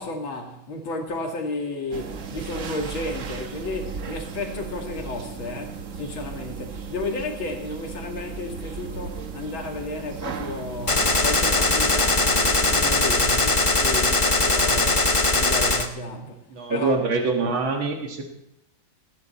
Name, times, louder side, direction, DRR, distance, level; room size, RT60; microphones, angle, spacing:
voice 1, 0.0-16.4 16.7-16.9, left 2 dB, 80° left, 3.0 m, -33 dB
sound 1, 1.9-13.1, right 6 dB, 45° right, 1.2 m, -36 dB
Gunshot gunfire, 10.9-15.9, left 2 dB, 20° left, 0.9 m, -20 dB
voice 2, 16.5-18.2, right 3 dB, 80° right, 2.5 m, -24 dB
18.5 x 15.0 x 4.3 m
omnidirectional pair, 2.2 m